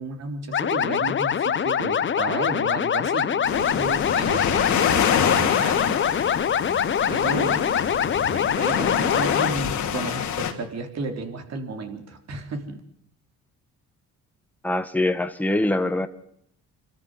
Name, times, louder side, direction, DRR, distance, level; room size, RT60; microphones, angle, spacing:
voice 1, 0.0-6.0 7.1-7.6 8.3-12.8, right 3 dB, 60° right, 5 dB, 3.7 m, -33 dB
sound 1, 0.5-9.5, left 8 dB, 40° left, 0.8 m, -24 dB
sound 2, 3.4-10.5, left 8 dB, 75° left, 2.9 m, -26 dB
voice 2, 14.6-16.1, left 1 dB, 5° left, 8 dB, 1.5 m, -23 dB
26.0 x 13.5 x 8.0 m, 0.71 s
cardioid pair, 90°, 30 cm